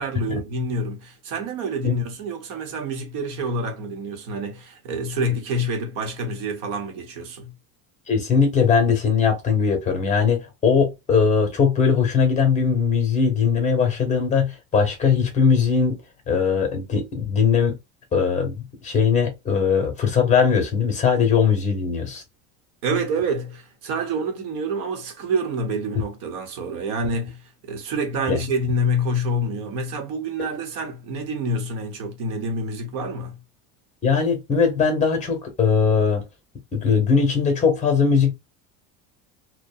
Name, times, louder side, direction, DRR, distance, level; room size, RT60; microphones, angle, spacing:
voice 1, 0.0-7.5 22.8-33.4, right 1 dB, 65° right, 1.0 m, -27 dB
voice 2, 8.1-16.0 16.3-17.8 18.1-22.2 28.3-28.4 34.0-36.2 36.7-38.3, left 6 dB, 20° left, 0.8 m, -20 dB
2.7 x 2.1 x 2.3 m
cardioid pair, 165°, 36 cm